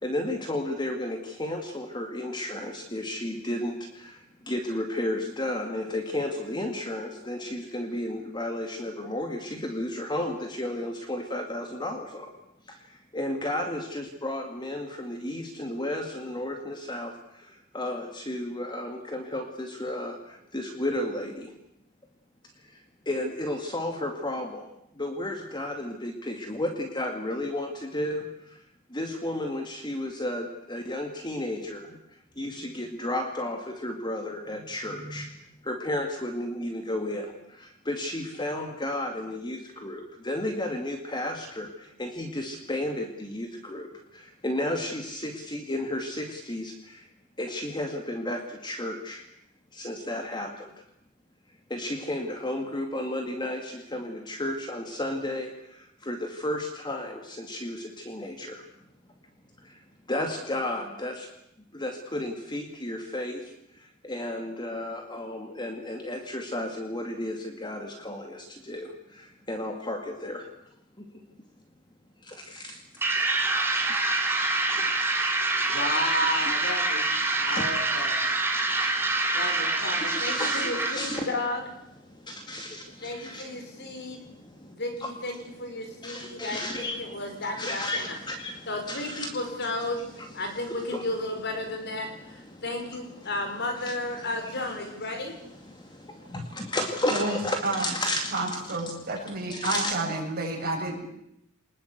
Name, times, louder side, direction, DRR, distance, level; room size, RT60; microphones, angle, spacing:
voice 1, 0.0-12.3 12.7-21.5 22.6-24.7 24.9-35.3 35.6-47.1 47.4-49.2 49.7-50.7 51.7-58.7 59.6-59.8 60.1-61.3 61.7-70.5 71.0-71.1 72.2-72.8 73.9-74.0 74.7-74.9 75.7-75.8 76.5-76.6 77.4-77.8 78.3-81.2 82.0-84.7 85.0-91.2 91.6-94.7 95.1-100.0, left 1 dB, 20° left, 4 dB, 2.2 m, -33 dB
sound 1, 73.0-81.3, right 2 dB, 10° right, 3.2 m, -26 dB
voice 2, 75.6-77.0 77.3-78.2 79.3-81.6 83.0-84.2 84.7-88.0 88.7-90.0 90.3-92.1 92.6-95.3, left 1 dB, 55° left, 5 dB, 5.2 m, -33 dB
voice 3, 98.3-101.0, right 2 dB, 45° right, 0 dB, 7.3 m, -30 dB
25.5 x 20.5 x 8.2 m, 0.80 s
head